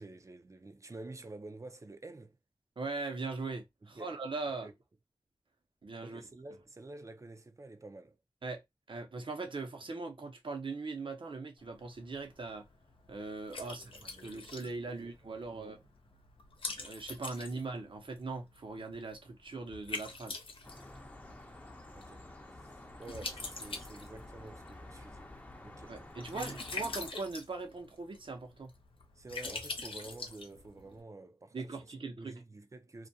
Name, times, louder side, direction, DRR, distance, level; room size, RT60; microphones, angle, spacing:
voice 1, 0.0-2.4 3.8-4.2 4.6-4.7 6.0-8.2 13.7-14.4 14.9-15.1 15.5-15.8 17.5-17.6 22.0-22.3 22.6-22.7 23.0-25.3 25.6-26.0 26.3-26.6 29.2-31.8 32.2-33.1, right 2 dB, 35° right, 0.5 m, -49 dB
voice 2, 2.8-4.7 5.8-6.2 8.4-8.6 8.9-12.7 13.1-15.8 16.8-20.4 25.9-28.7 31.5-32.4, right 3 dB, 65° right, 0.8 m, -40 dB
Liquid, 11.6-31.0, left 3 dB, 75° left, 0.6 m, -46 dB
sound 1, 20.6-27.1, left 1 dB, 15° left, 0.7 m, -50 dB
2.4 x 2.2 x 2.7 m
cardioid pair, 45°, 9 cm